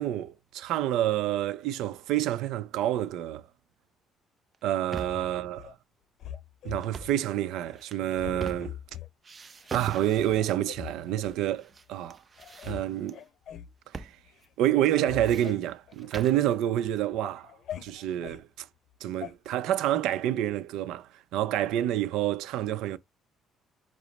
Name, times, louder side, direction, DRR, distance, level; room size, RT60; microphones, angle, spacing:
voice 1, 0.0-3.4 4.6-5.8 6.6-8.8 9.7-12.2 12.6-13.2 13.9-14.1 14.6-17.5 17.8-18.7 19.0-23.0, right 12 dB, 85° right, 0.5 m, -28 dB
sound 1, 4.5-5.3 6.8-7.2 7.8-8.9 9.2-10.5 11.3-11.8 12.1-13.1 13.9-14.2 14.4-14.5 15.0-16.4, right 5 dB, 30° right, 0.6 m, -42 dB
sound 2, 5.1-5.7 6.2-7.2 7.6-7.8 8.1-9.1 9.6-9.7 10.2-11.4 12.0-12.1 12.4-12.8 13.1-13.7 14.2-14.5 14.7-16.5 16.9-18.4 19.2-19.3, left 10 dB, 60° left, 0.6 m, -43 dB
5.0 x 2.0 x 4.1 m
cardioid pair, 120°, 0 cm